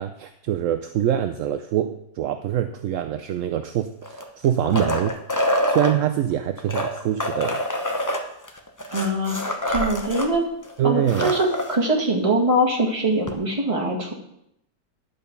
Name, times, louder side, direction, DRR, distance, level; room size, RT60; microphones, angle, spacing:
voice 1, 0.0-5.2 5.7-7.6 10.8-11.3, right 10 dB, 70° right, 9 dB, 0.8 m, -24 dB
sound 1, 4.0-5.9 6.6-10.3 10.6-10.7 11.0-11.8 13.3-13.4, left 1 dB, 15° left, 0.6 m, -26 dB
voice 2, 8.9-9.4 9.7-10.4 10.8-14.1, right 1 dB, 20° right, -2 dB, 2.0 m, -22 dB
11.0 x 5.2 x 6.8 m, 0.78 s
omnidirectional pair, 1.7 m